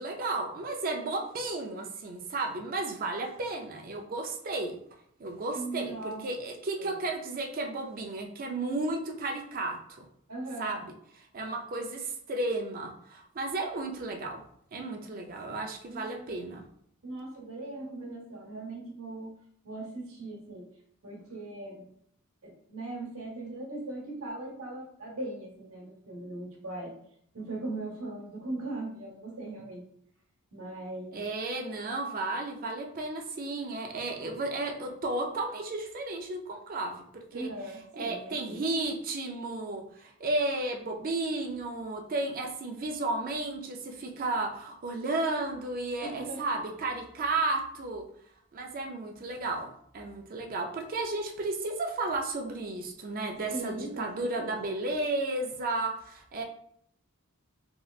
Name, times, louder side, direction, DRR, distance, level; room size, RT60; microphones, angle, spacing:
voice 1, 0.0-4.8 5.2-10.1 10.6-10.9 11.2-14.4 14.7-16.7 31.1-37.5 37.9-48.0 48.5-56.4, right 2 dB, 40° right, 3 dB, 0.4 m, -33 dB
voice 2, 5.5-6.3 6.8-7.0 10.3-10.7 15.9-16.4 17.0-19.3 19.6-20.7 21.0-21.9 22.4-26.9 27.3-29.8 30.5-31.2 37.3-38.6 46.0-46.4 53.5-54.7, right 2 dB, 70° right, -2 dB, 1.0 m, -39 dB
3.1 x 2.8 x 2.4 m, 0.66 s
head